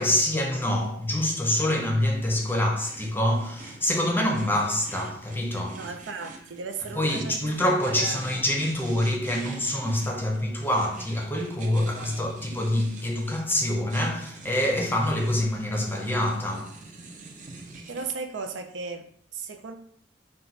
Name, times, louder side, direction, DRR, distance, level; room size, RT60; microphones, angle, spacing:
voice 1, 0.0-5.9 6.9-16.8, left 1 dB, 10° left, 0.6 m, -26 dB
sound 1, 0.8-18.1, right 3 dB, 45° right, 0.6 m, -46 dB
voice 2, 5.7-7.5 7.8-8.4 11.8-12.2 12.5-12.6 17.9-19.7, right 4 dB, 85° right, 0.5 m, -36 dB
4.5 x 2.2 x 4.0 m
head